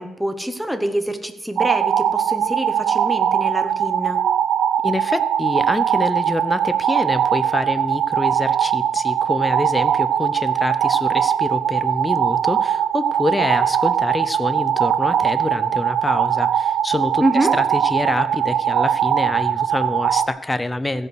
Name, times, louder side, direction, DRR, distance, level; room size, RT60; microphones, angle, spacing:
voice 1, 0.0-4.2 17.2-17.5, right 1 dB, 5° right, 8 dB, 1.0 m, -25 dB
sound 1, 1.6-20.3, right 9 dB, 75° right, 0.5 m, -20 dB
voice 2, 4.8-21.1, left 2 dB, 15° left, 12 dB, 0.6 m, -26 dB
15.0 x 5.6 x 6.4 m, 1.0 s
cardioid pair, 120°, 0 cm